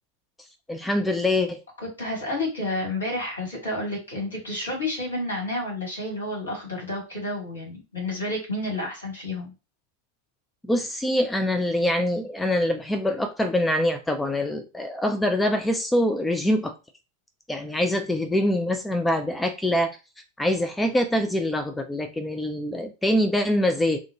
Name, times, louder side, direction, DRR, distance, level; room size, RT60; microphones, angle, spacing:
voice 1, 0.7-1.6 10.6-16.7 17.5-19.9 20.4-24.0, left 1 dB, 5° left, 0.3 m, -24 dB
voice 2, 1.8-9.5, left 1 dB, 70° left, 1.7 m, -30 dB
3.6 x 2.2 x 2.8 m
figure-of-eight pair, 90°, 0 cm